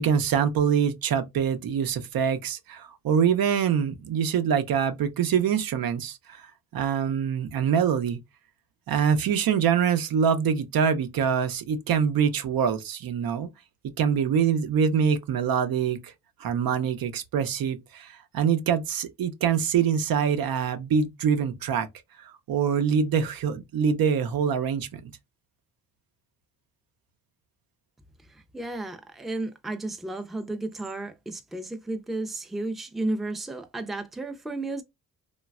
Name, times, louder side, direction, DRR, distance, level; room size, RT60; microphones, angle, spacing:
voice 1, 0.0-8.2 8.9-13.5 14.0-16.1 16.4-21.9 22.2-25.1, right 7 dB, 70° right, 0.7 m, -25 dB
voice 2, 28.3-34.8, right 2 dB, ahead, 0.4 m, -33 dB
3.1 x 2.3 x 2.3 m
cardioid pair, 75°, 36 cm